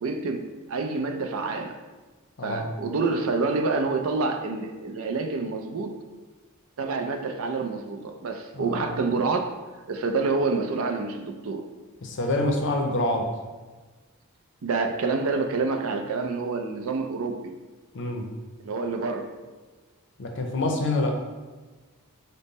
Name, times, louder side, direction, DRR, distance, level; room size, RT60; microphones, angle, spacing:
voice 1, 0.0-1.8 2.4-6.0 6.8-9.5 9.9-11.7 14.6-17.6 18.6-19.3, right 3 dB, 65° right, 5 dB, 0.4 m, -27 dB
voice 2, 2.4-2.7 8.6-9.0 12.0-13.3 17.9-18.3 20.2-21.2, left 2 dB, 55° left, 3 dB, 0.6 m, -26 dB
5.2 x 2.1 x 4.0 m, 1.3 s
head